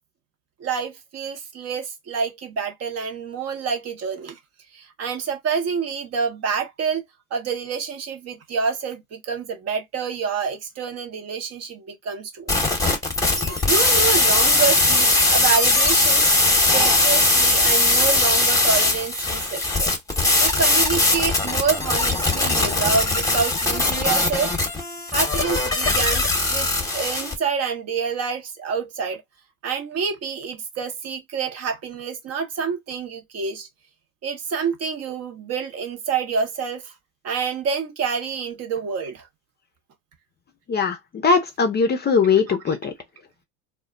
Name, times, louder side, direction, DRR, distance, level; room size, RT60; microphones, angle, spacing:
voice 1, 0.6-4.4 4.7-7.0 7.3-12.5 13.4-16.4 16.6-19.9 20.4-24.7 25.1-29.2 29.6-33.7 34.2-36.9 37.2-39.3 42.7-42.8, right 6 dB, 40° right, 0.8 m, -27 dB
sound 1, 12.5-27.3, left 2 dB, 10° left, 0.9 m, -20 dB
voice 2, 40.7-42.9, left 5 dB, 25° left, 0.5 m, -20 dB
2.2 x 2.0 x 3.6 m
hypercardioid pair, 85°, 40 cm